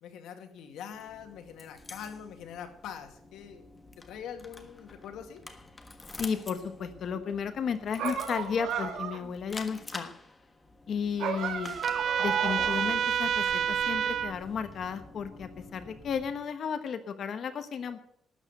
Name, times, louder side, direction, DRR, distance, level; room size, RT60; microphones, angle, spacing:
voice 1, 0.0-3.7 4.1-5.4, left 8 dB, 90° left, 5 dB, 2.2 m, -43 dB
sound 1, 0.9-16.3, left 2 dB, 15° left, 1.4 m, -48 dB
voice 2, 6.1-10.1 10.9-11.8 12.2-18.0, left 6 dB, 50° left, 10 dB, 1.1 m, -33 dB
sound 2, 8.0-9.3 11.2-13.0, right 7 dB, 80° right, 2.3 m, -34 dB
Trumpet, 11.8-14.3, right 8 dB, 55° right, 0.6 m, -28 dB
12.5 x 9.0 x 7.8 m, 0.69 s
cardioid pair, 155°, 0 cm